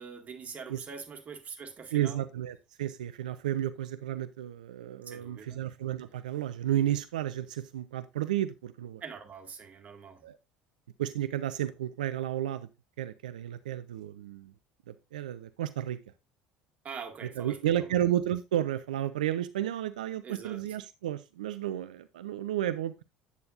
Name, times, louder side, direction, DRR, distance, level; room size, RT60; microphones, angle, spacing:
voice 1, 0.0-2.2 5.1-5.6 9.0-10.2 16.8-17.9 20.2-20.6, right 6 dB, 35° right, 1.8 m, -44 dB
voice 2, 1.9-9.0 10.2-10.4 11.0-12.7 13.0-14.5 14.9-16.0 17.4-23.0, right 12 dB, 75° right, 0.4 m, -32 dB
8.7 x 8.2 x 2.4 m
figure-of-eight pair, 60°, 4 cm